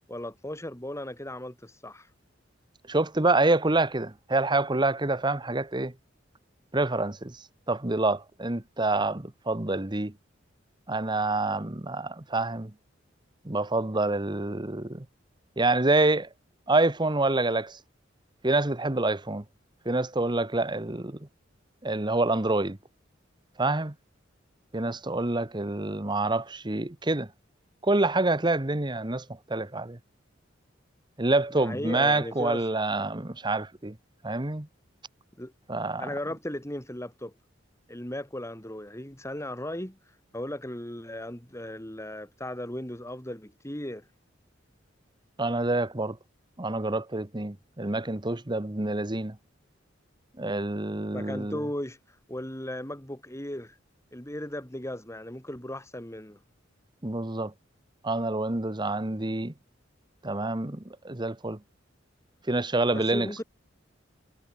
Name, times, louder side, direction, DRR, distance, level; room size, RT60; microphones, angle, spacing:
voice 1, 0.1-2.1 31.6-32.6 35.4-35.5 36.0-37.3 37.9-40.0 40.3-44.1 51.1-52.0 52.3-53.7 54.1-56.4 62.9-63.4, left 1 dB, 15° left, 4.5 m, -36 dB
voice 2, 2.9-5.9 6.7-7.4 7.7-10.1 10.9-12.7 13.4-15.0 15.6-16.3 16.7-17.8 18.4-19.4 19.8-21.2 21.8-22.8 23.6-23.9 24.7-27.3 27.8-29.2 29.5-30.0 31.2-33.9 34.2-34.7 35.7-36.1 45.4-46.2 46.6-49.4 50.4-51.6 57.0-57.5 58.0-59.5 60.2-61.6 62.5-63.4, right 2 dB, 25° right, 1.2 m, -27 dB
head